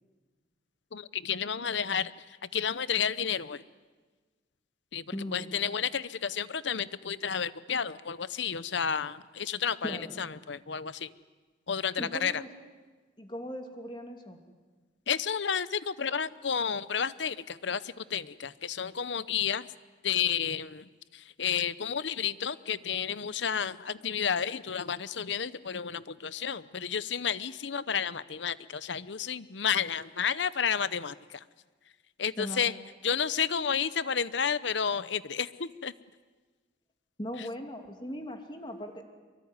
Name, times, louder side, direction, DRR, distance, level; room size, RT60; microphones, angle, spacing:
voice 1, 0.9-3.6 4.9-11.1 11.7-12.4 15.1-19.7 20.0-31.4 32.2-32.7 33.0-35.9 37.4-37.5, left 7 dB, 75° left, 16 dB, 0.8 m, -31 dB
voice 2, 5.1-5.5 9.8-10.1 12.0-12.5 13.2-14.4 32.4-32.7 37.2-39.0, equal, 25° left, 4 dB, 2.7 m, -38 dB
24.5 x 23.0 x 9.6 m, 1.4 s
head